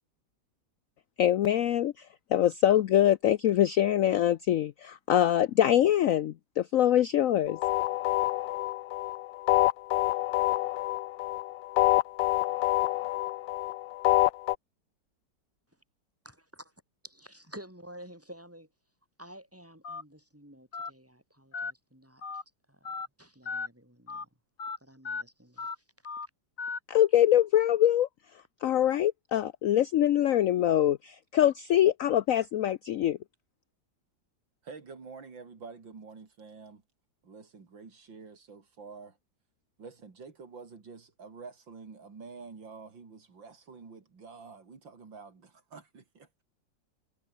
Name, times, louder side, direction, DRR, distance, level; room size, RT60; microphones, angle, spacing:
voice 1, 1.2-2.1 2.3-7.6 26.9-28.1 28.6-33.2, left 11 dB, 65° left, 0.8 m, -24 dB
sound 1, 7.5-14.5, left 16 dB, 80° left, 1.3 m, -27 dB
voice 2, 16.2-16.7 17.0-18.7 19.2-22.2 23.2-24.3 24.8-25.7, right 1 dB, 5° right, 6.1 m, -50 dB
Telephone, 19.8-20.0 20.7-20.9 21.5-21.7 22.2-22.4 22.9-23.1 23.5-23.7 24.1-24.2 24.6-24.8 25.1-25.2 25.6-25.8 26.1-26.3 26.6-26.8, left 4 dB, 45° left, 2.7 m, -36 dB
voice 3, 34.6-36.8 37.2-39.2 39.8-46.4, right 5 dB, 85° right, 3.9 m, -48 dB
omnidirectional pair, 2.0 m